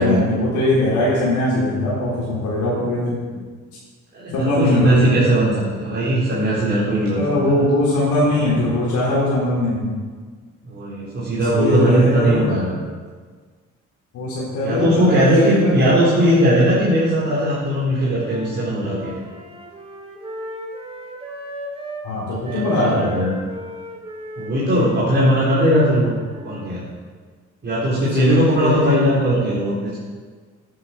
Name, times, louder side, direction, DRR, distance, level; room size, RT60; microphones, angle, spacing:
voice 1, 0.0-3.2 4.3-5.1 7.1-10.0 11.4-12.6 14.1-16.3 22.0-23.2 28.2-29.5, left 1 dB, 80° left, -7 dB, 3.6 m, -21 dB
voice 2, 4.1-7.2 7.5-7.7 10.7-12.7 14.6-19.2 22.4-23.4 24.4-26.1 26.4-26.8 27.6-30.0, right 1 dB, 35° right, -9 dB, 4.1 m, -19 dB
Wind instrument woodwind instrument, 18.2-22.1 22.4-26.8, right 1 dB, 20° right, 2.8 m, -36 dB
10.0 x 8.9 x 5.9 m, 1.5 s
cardioid pair, 90°, 30 cm